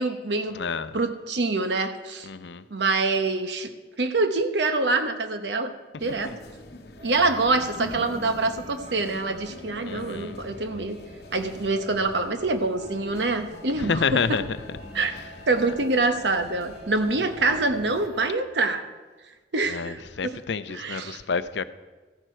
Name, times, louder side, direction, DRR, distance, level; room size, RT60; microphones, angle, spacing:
voice 1, 0.0-0.6 0.9-2.3 2.7-3.7 4.0-5.7 6.0-6.3 7.0-11.0 11.3-14.4 14.9-15.1 15.5-18.8 19.5-20.4 20.7-21.2, right 3 dB, 80° right, 1.0 m, -25 dB
voice 2, 0.5-1.0 2.2-2.6 6.3-6.4 9.8-10.4 13.8-14.8 15.2-15.3 19.7-21.6, left 5 dB, 80° left, 0.6 m, -29 dB
sound 1, 6.0-18.1, left 1 dB, 65° left, 1.0 m, -43 dB
sound 2, 7.0-18.3, left 1 dB, 35° right, 3.7 m, -47 dB
14.5 x 11.0 x 4.5 m
head